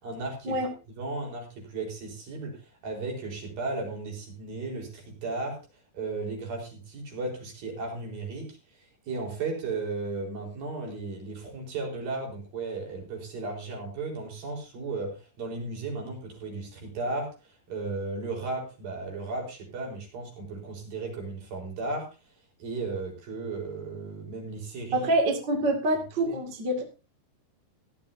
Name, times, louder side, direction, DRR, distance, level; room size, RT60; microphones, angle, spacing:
voice 1, 0.0-0.6 0.9-5.6 5.9-22.1 22.6-25.1 26.3-26.4, right 3 dB, 50° right, 1 dB, 5.9 m, -35 dB
voice 2, 24.9-26.8, right 1 dB, 35° right, 3 dB, 2.0 m, -26 dB
17.5 x 12.5 x 2.7 m, 0.29 s
omnidirectional pair, 5.4 m